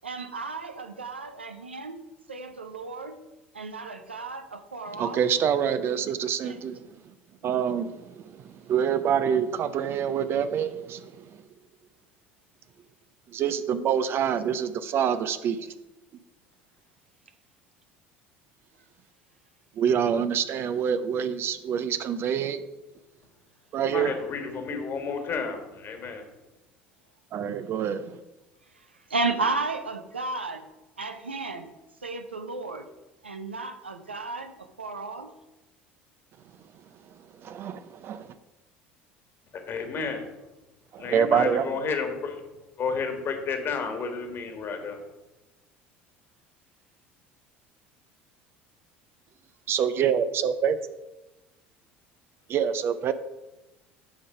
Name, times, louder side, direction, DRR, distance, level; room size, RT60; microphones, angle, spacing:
voice 1, 0.0-2.0 2.3-3.3 3.5-5.2 6.4-6.6 7.7-7.9 29.1-30.7 31.0-31.7 32.0-32.9 33.2-35.3, right 3 dB, 85° right, 7 dB, 0.6 m, -33 dB
voice 2, 4.9-6.8 7.4-11.4 13.3-15.6 19.8-22.6 23.7-24.1 27.3-28.2 37.4-38.3 40.9-41.7 49.7-50.8 52.5-53.1, right 8 dB, 40° right, 11 dB, 0.5 m, -26 dB
voice 3, 23.9-26.2 39.5-40.3 41.0-42.4 42.8-45.0, left 5 dB, 40° left, 5 dB, 1.6 m, -31 dB
8.6 x 5.4 x 4.9 m, 1.1 s
figure-of-eight pair, 65°, 6 cm